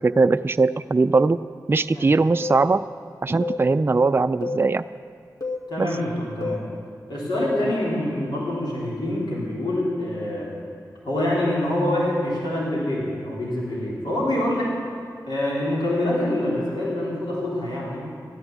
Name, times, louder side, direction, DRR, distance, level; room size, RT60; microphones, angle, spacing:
voice 1, 0.0-1.4 1.7-2.9 3.2-4.8 5.8-5.9, right 3 dB, 30° right, 11 dB, 0.3 m, -20 dB
sound 1, 2.4-2.7 3.4-3.7 4.4-4.7 5.4-5.7 6.4-6.7 7.4-7.7, left 2 dB, 50° left, 2.1 m, -29 dB
voice 2, 5.7-6.6 7.1-10.5 11.0-14.7 15.3-18.0, left 1 dB, 80° left, -6 dB, 3.7 m, -25 dB
14.5 x 9.9 x 7.3 m, 2.2 s
cardioid pair, 40°, 7 cm